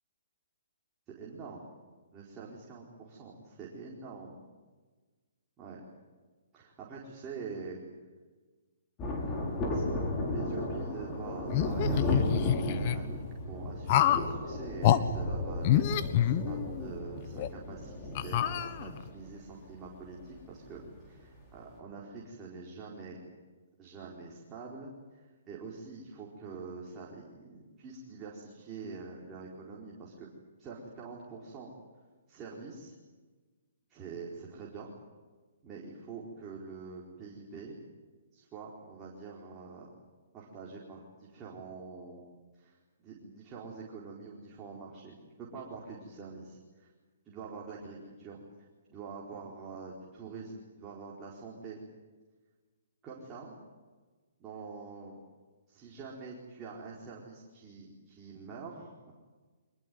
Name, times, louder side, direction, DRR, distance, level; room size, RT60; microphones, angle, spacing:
voice 1, 1.1-1.7 2.1-4.3 5.6-5.8 6.5-7.8 9.7-13.2 13.5-23.2 23.8-30.3 30.6-31.7 32.3-32.9 33.9-34.9 35.6-37.8 38.3-39.9 40.3-42.2 42.5-46.9 47.2-48.4 48.9-51.8 53.0-53.5 54.4-55.2 55.7-59.1, right 4 dB, 20° right, -4 dB, 4.6 m, -45 dB
Thunder, 9.0-21.0 21.2-21.3, left 1 dB, 20° left, 5.6 m, -34 dB
sound 1, 11.5-13.0 13.9-14.3 14.8-15.0 15.6-16.9 17.4-17.5 18.2-19.1, left 11 dB, 35° left, 1.3 m, -27 dB
24.5 x 21.5 x 9.4 m, 1.3 s
hypercardioid pair, 155°, 0 cm